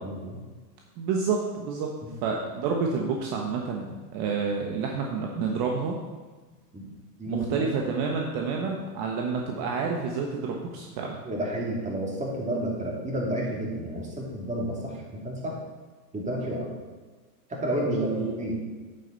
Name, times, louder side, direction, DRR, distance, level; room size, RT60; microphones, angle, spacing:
voice 1, 0.0-0.4 6.7-6.9 7.2-7.7 11.2-15.5 16.1-16.7 17.5-18.1 18.4-18.6, right 1 dB, 15° right, -3 dB, 2.7 m, -31 dB
voice 2, 1.0-1.9 2.2-6.0 7.3-11.2 17.8-18.3, right 5 dB, 50° right, 1 dB, 1.2 m, -29 dB
8.8 x 7.9 x 4.0 m, 1.3 s
hypercardioid pair, 110°, 49 cm